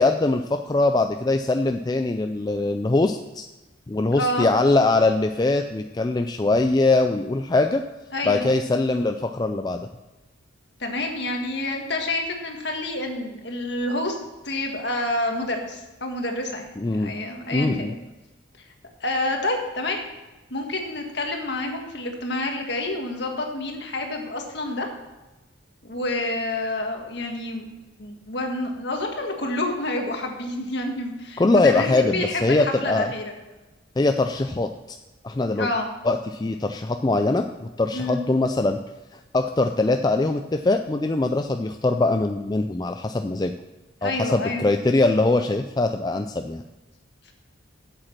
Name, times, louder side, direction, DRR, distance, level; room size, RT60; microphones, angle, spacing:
voice 1, 0.0-3.5 3.9-7.8 8.3-9.9 16.8-17.1 17.5-17.9 31.4-33.1 34.0-34.7 35.2-35.7 36.0-38.8 39.1-43.5 44.0-46.6, left 2 dB, 20° left, 6 dB, 0.3 m, -22 dB
voice 2, 4.1-4.5 8.1-8.5 10.8-14.2 14.4-17.9 19.0-20.0 20.5-24.9 25.8-27.7 28.0-33.2 35.6-35.9 37.9-38.2 44.0-44.7, left 2 dB, 55° left, 2 dB, 1.7 m, -28 dB
8.4 x 7.9 x 6.0 m, 1.1 s
head